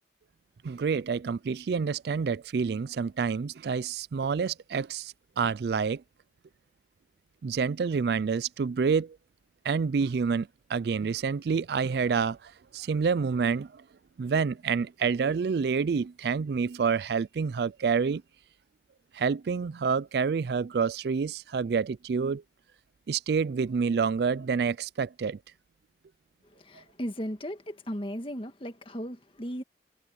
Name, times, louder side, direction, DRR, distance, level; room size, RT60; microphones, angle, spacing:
voice 1, 0.6-6.0 7.4-9.2 9.6-13.8 14.2-18.2 19.1-22.4 23.1-25.4, right 5 dB, 60° right, 0.4 m, -28 dB
voice 2, 26.4-29.6, equal, 30° left, 1.8 m, -36 dB
head